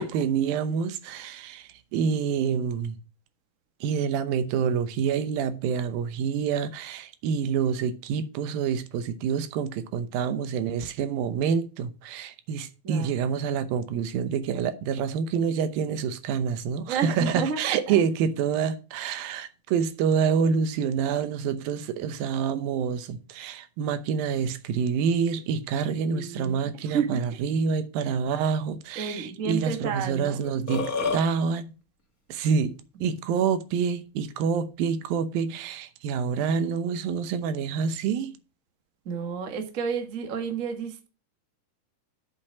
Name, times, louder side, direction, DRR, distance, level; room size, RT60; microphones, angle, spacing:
voice 1, 0.0-3.0 3.8-31.7 32.3-32.7 33.0-38.4, right 6 dB, 90° right, 2.7 m, -27 dB
voice 2, 16.9-18.0 26.0-27.2 28.9-30.4 33.1-33.2 39.0-41.1, right 6 dB, 50° right, 0.9 m, -31 dB
Burping eructation, 30.0-30.1 30.4-31.2, left 4 dB, 35° left, 1.4 m, -28 dB
8.3 x 5.2 x 7.1 m
omnidirectional pair, 4.0 m